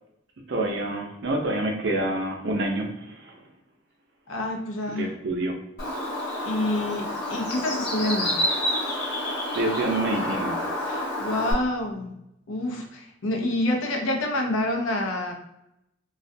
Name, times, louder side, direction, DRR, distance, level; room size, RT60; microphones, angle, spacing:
voice 1, 0.5-3.3 5.0-5.6 9.5-10.5, right 2 dB, 60° right, 1 dB, 0.5 m, -27 dB
voice 2, 4.3-5.1 6.4-8.3 10.8-12.1 12.5-15.3, left 1 dB, 85° left, 1 dB, 0.6 m, -27 dB
Bird, 5.8-11.5, left 1 dB, 55° left, 0.8 m, -28 dB
2.3 x 2.1 x 2.6 m, 0.84 s
head